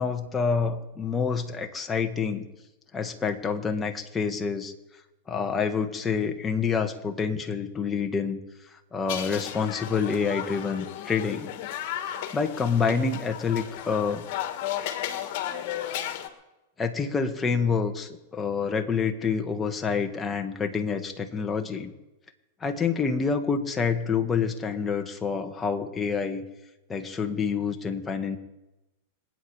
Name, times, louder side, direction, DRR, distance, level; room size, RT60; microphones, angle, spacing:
voice 1, 0.0-2.5 2.9-4.7 5.3-8.4 8.9-11.5 12.3-14.2 16.8-21.9 22.6-26.4 26.9-28.4, left 5 dB, 15° left, 5 dB, 1.9 m, -27 dB
sound 1, 9.1-16.3, left 11 dB, 55° left, 2.1 m, -34 dB
26.5 x 9.2 x 5.1 m, 0.99 s
hypercardioid pair, 115°, 0 cm